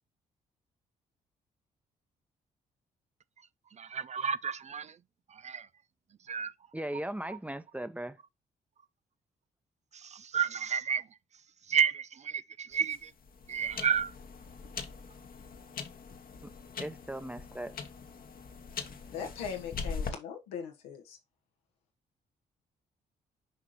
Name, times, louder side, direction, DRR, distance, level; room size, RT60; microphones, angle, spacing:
voice 1, 3.8-4.9 5.3-5.7 6.3-6.5 9.9-11.0 11.7-13.1 13.5-14.1, right 7 dB, 40° right, 0.4 m, -31 dB
voice 2, 6.7-8.2 16.4-16.5 16.8-17.7, right 1 dB, 5° right, 0.9 m, -38 dB
sound 1, 12.7-20.1, left 5 dB, 50° left, 1.2 m, -42 dB
voice 3, 19.1-21.2, left 7 dB, 85° left, 1.4 m, -40 dB
6.5 x 5.0 x 3.0 m
hypercardioid pair, 45°, 19 cm